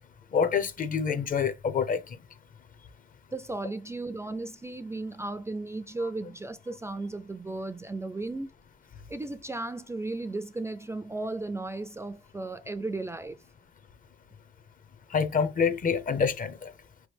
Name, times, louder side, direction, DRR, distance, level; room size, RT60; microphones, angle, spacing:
voice 1, 0.3-2.2 15.1-16.7, left 6 dB, 45° left, 0.7 m, -27 dB
voice 2, 3.3-8.5 9.1-13.4, right 2 dB, 15° right, 0.3 m, -35 dB
4.5 x 3.1 x 3.3 m
cardioid pair, 90°, 20 cm